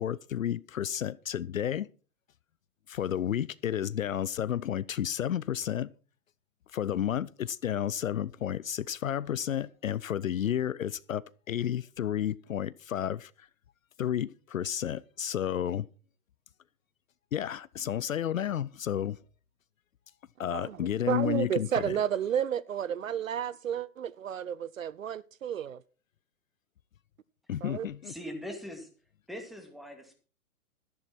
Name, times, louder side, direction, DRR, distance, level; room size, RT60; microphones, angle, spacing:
voice 1, 0.0-1.9 2.9-5.9 6.7-13.5 14.0-15.9 17.3-19.2 20.4-22.0 27.5-28.1, left 10 dB, 65° left, 0.6 m, -31 dB
voice 2, 20.5-25.8 27.6-27.9, right 9 dB, 65° right, 0.6 m, -32 dB
voice 3, 28.0-28.9 29.3-30.1, equal, ahead, 2.4 m, -41 dB
13.5 x 10.5 x 4.4 m
figure-of-eight pair, 110°, 44 cm